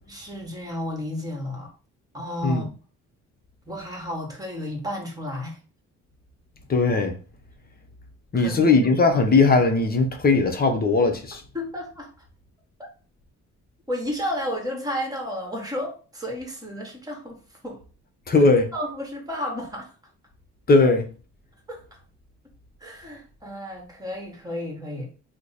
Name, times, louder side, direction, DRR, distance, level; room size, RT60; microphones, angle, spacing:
voice 1, 0.1-1.7 2.1-2.7 3.7-5.6 8.3-8.8 9.1-9.2 11.5-12.1 13.9-17.8 18.4-18.5 18.7-19.9 21.7-21.8 22.8-25.1, left 1 dB, 10° right, 1.3 m, -32 dB
voice 2, 6.7-7.1 8.3-11.4 18.3-18.7 20.7-21.0, left 3 dB, 30° left, 0.8 m, -19 dB
3.1 x 2.1 x 3.9 m
cardioid pair, 90°, 30 cm